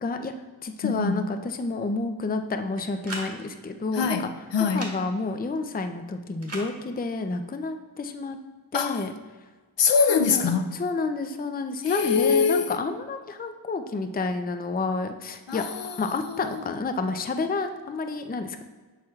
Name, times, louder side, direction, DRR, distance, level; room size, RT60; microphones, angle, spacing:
voice 1, 0.0-0.3 0.6-4.2 4.6-8.4 8.7-9.1 10.1-10.4 10.7-15.6 16.0-18.6, left 3 dB, 20° left, 7 dB, 0.5 m, -29 dB
voice 2, 0.8-1.3 3.9-4.9 8.7-9.0 9.8-10.7 11.8-12.8 15.5-16.0 16.3-16.6, left 6 dB, 65° left, 7 dB, 0.6 m, -24 dB
sound 1, 2.8-3.3 4.7-5.0 6.4-6.7, right 1 dB, 30° right, 1.8 m, -36 dB
7.6 x 5.9 x 2.4 m, 1.4 s
wide cardioid pair, 65°, 48 cm